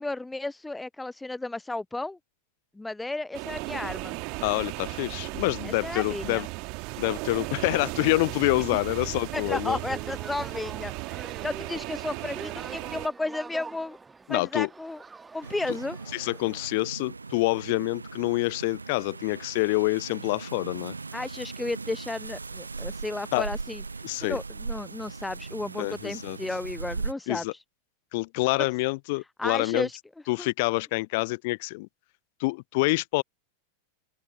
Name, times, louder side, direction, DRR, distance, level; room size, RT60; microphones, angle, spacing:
voice 1, 0.0-2.2 2.8-4.2 5.6-6.4 9.3-14.0 14.3-15.0 15.3-16.0 21.1-23.8 24.2-27.4 29.4-30.0 30.4-30.5, left 2 dB, 5° left, 0.4 m, -33 dB
sound 1, 3.3-13.1, right 31 dB, 45° right, 2.3 m, -36 dB
voice 2, 4.4-6.5 7.0-9.8 14.3-14.7 16.1-21.0 23.3-23.5 24.0-24.4 25.8-26.4 27.3-27.5 28.1-29.9 30.3-31.9 32.4-33.2, left 25 dB, 50° left, 0.7 m, -27 dB
sound 2, 9.4-16.7, right 4 dB, 15° right, 1.8 m, -45 dB
sound 3, 15.4-27.1, right 4 dB, 80° right, 0.5 m, -39 dB
open air
figure-of-eight pair, 90°, 0 cm